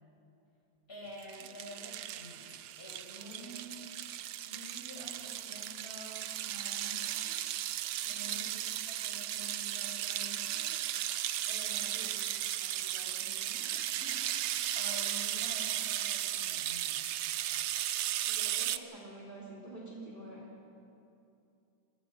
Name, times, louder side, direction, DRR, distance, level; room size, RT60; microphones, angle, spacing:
voice 1, 0.9-2.5 2.8-3.8 4.4-7.3 8.1-8.6 8.9-10.7 11.5-14.5 14.7-17.0, equal, 30° left, -3 dB, 5.7 m, -49 dB
sound 1, 1.2-18.8, right 12 dB, 75° right, 1.4 m, -36 dB
voice 2, 3.2-3.6 8.0-8.5 11.7-12.1 18.2-20.5, right 1 dB, 25° right, -4 dB, 2.9 m, -49 dB
27.0 x 21.5 x 5.4 m, 2.7 s
omnidirectional pair, 2.1 m